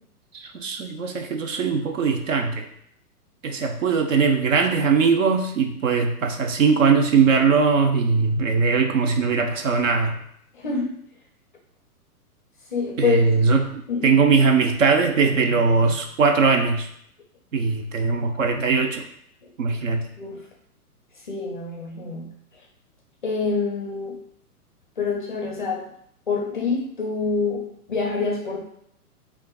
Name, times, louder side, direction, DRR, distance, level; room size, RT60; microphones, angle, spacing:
voice 1, 0.3-2.7 3.4-10.1 13.0-16.9 17.5-19.0 19.6-20.0, right 5 dB, 55° right, 4 dB, 0.7 m, -20 dB
voice 2, 10.5-11.0 12.7-13.2 13.9-14.2 20.2-20.5 21.3-22.3 23.2-24.2 25.0-25.9 26.3-28.6, left 4 dB, 35° left, 0 dB, 0.4 m, -26 dB
6.3 x 2.5 x 2.3 m, 0.70 s
hypercardioid pair, 160°, 46 cm